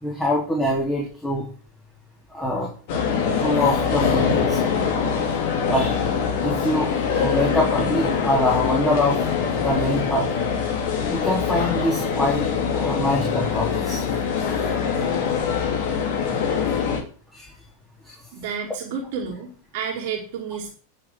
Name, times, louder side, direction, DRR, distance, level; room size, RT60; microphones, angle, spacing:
voice 1, 0.0-1.5 2.3-2.7 3.4-4.6 5.6-6.1 6.4-10.3 11.0-14.1 14.5-14.6 16.7-16.8 17.3-17.5 18.0-18.1, left 1 dB, 10° left, -3 dB, 3.7 m, -24 dB
sound 1, 2.9-17.0, left 6 dB, 50° left, 2.7 m, -23 dB
voice 2, 18.3-20.7, right 6 dB, 50° right, 0 dB, 2.7 m, -31 dB
10.5 x 6.6 x 8.0 m, 0.39 s
figure-of-eight pair, 90°, 0 cm